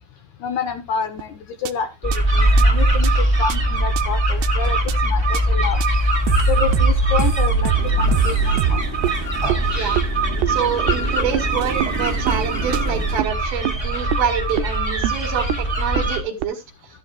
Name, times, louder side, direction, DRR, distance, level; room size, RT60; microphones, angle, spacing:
voice 1, 0.4-3.1 3.4-4.8 5.0-5.8 6.5-7.7 8.0-8.9 9.7-10.0, left 6 dB, 60° left, 6 dB, 2.1 m, -28 dB
sound 1, 1.2-1.3 1.7-1.8 2.1-2.2 2.6-2.7 3.0-3.1 3.5-3.6 4.0-4.1 4.4-4.5 4.9-5.0 5.3-5.4 5.8-5.9 6.3-9.1 9.5-9.6 10.0-10.1 10.4-10.5 10.9-11.0 11.3-11.4 11.8-11.9 12.3-12.4 12.7-12.8 13.2-13.3 13.6-13.7 14.1-14.2 14.6-14.7 15.0-15.2 15.5-15.6 15.9-16.0 16.4-16.5, right 6 dB, 85° right, 2.8 m, -21 dB
sound 2, 2.0-16.2, right 1 dB, 10° right, 1.7 m, -21 dB
Motorcycle, 7.7-13.2, right 7 dB, 60° right, 2.6 m, -33 dB
voice 2, 10.5-16.6, right 7 dB, 40° right, 0 dB, 2.5 m, -26 dB
14.5 x 9.8 x 2.4 m, 0.23 s
omnidirectional pair, 4.7 m